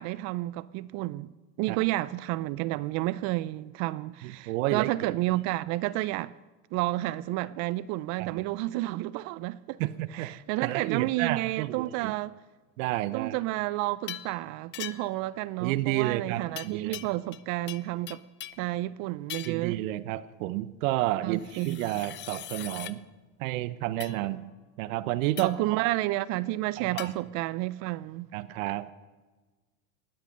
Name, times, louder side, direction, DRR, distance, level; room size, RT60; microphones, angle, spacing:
voice 1, 0.0-1.3 1.6-6.3 6.7-9.8 10.1-12.4 13.1-18.2 18.6-19.8 21.2-21.9 25.4-28.3, right 17 dB, 40° right, 0.4 m, -31 dB
voice 2, 4.2-4.9 8.2-8.4 9.8-10.3 10.6-12.1 12.8-13.3 15.6-17.0 19.4-23.0 23.4-24.5 24.8-25.9 26.8-27.1 28.3-28.9, right 15 dB, 65° right, 0.9 m, -31 dB
sound 1, 14.1-14.4 14.7-15.2 16.6-17.4 17.7-18.7 19.3-19.7 21.4-23.0 24.0-24.2 25.4-25.7 27.0-27.1, left 13 dB, 25° left, 0.5 m, -41 dB
19.5 x 12.0 x 5.3 m
hypercardioid pair, 110°, 43 cm